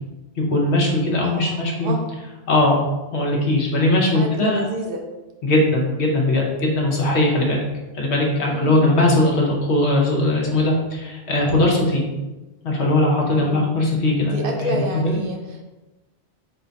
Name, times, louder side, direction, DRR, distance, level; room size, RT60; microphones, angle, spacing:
voice 1, 0.4-1.9 2.5-4.6 5.4-7.6 7.9-12.0 12.6-15.2, left 1 dB, 75° left, -1 dB, 1.2 m, -20 dB
voice 2, 1.2-2.0 4.1-5.1 8.5-8.8 13.4-13.8 14.2-15.6, right 1 dB, 60° right, 2 dB, 0.7 m, -29 dB
4.3 x 2.3 x 3.9 m, 1.1 s
omnidirectional pair, 1.2 m